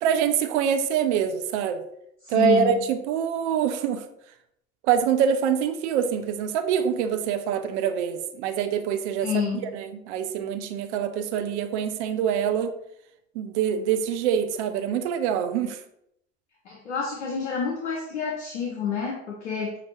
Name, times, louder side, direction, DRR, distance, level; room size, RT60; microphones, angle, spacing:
voice 1, 0.0-1.8 2.3-4.0 4.8-9.4 9.7-12.7 13.3-15.8, right 8 dB, 75° right, 8 dB, 0.5 m, -25 dB
voice 2, 2.3-2.8 9.2-9.8 16.7-19.8, left 6 dB, 90° left, 0 dB, 0.6 m, -28 dB
5.7 x 2.5 x 3.0 m, 0.77 s
hypercardioid pair, 50°, 34 cm